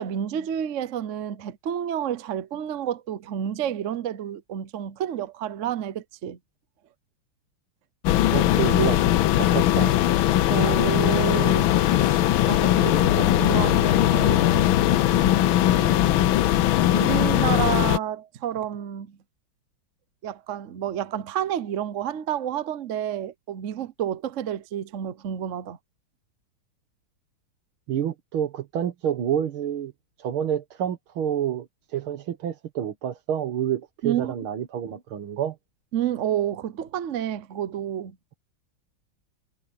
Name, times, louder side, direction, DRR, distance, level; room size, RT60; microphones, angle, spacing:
voice 1, 0.0-6.4 10.5-11.8 12.0-14.3 16.9-19.2 20.2-25.8 34.0-34.3 35.9-38.2, right 10 dB, 55° right, 0.9 m, -30 dB
sound 1, 8.1-18.0, left 13 dB, 80° left, 1.5 m, -20 dB
voice 2, 8.3-9.0 9.3-10.0 15.8-16.0 27.9-29.9 30.2-31.7 31.9-35.6, right 9 dB, 85° right, 2.2 m, -28 dB
sound 2, 11.3-16.1, left 8 dB, 50° left, 1.6 m, -29 dB
omnidirectional pair, 2.2 m